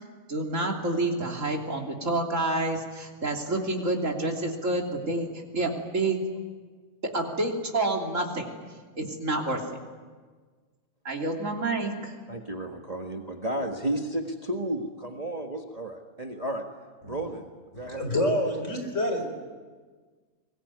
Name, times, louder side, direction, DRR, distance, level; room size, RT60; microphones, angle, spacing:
voice 1, 0.3-6.2 7.0-8.6 9.0-9.6 11.0-12.1, right 2 dB, 55° right, 1 dB, 3.5 m, -28 dB
voice 2, 12.3-16.6 17.0-18.2, right 1 dB, 25° right, 3 dB, 1.6 m, -33 dB
voice 3, 17.7-19.3, left 1 dB, 50° left, 5 dB, 4.8 m, -27 dB
24.0 x 20.5 x 9.6 m, 1.5 s
omnidirectional pair, 1.6 m